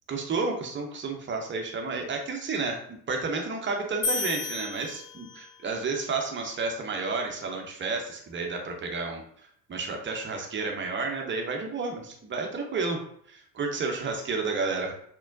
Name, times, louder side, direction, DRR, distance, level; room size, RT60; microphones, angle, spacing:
voice 1, 0.1-9.2 9.7-13.0 13.3-14.9, right 4 dB, 25° right, 2 dB, 0.8 m, -31 dB
sound 1, 4.0-5.6, left 4 dB, 70° left, 0.9 m, -32 dB
6.0 x 2.2 x 2.5 m, 0.65 s
figure-of-eight pair, 65°, 49 cm